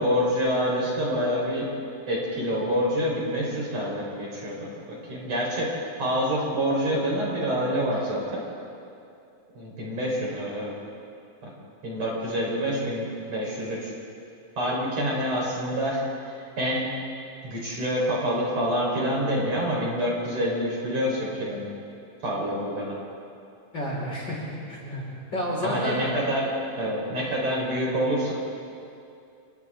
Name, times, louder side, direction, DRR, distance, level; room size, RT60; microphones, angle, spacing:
voice 1, 0.0-1.7 2.1-5.7 6.0-8.4 9.6-10.7 11.4-11.5 11.8-13.9 14.6-16.1 16.6-16.9 17.4-21.7 22.2-23.0 25.6-26.5 26.8-28.3, equal, 45° right, -4 dB, 5.6 m, -27 dB
voice 2, 23.7-26.0, equal, 30° left, -5 dB, 5.6 m, -30 dB
30.0 x 28.0 x 3.8 m, 2.6 s
omnidirectional pair, 4.2 m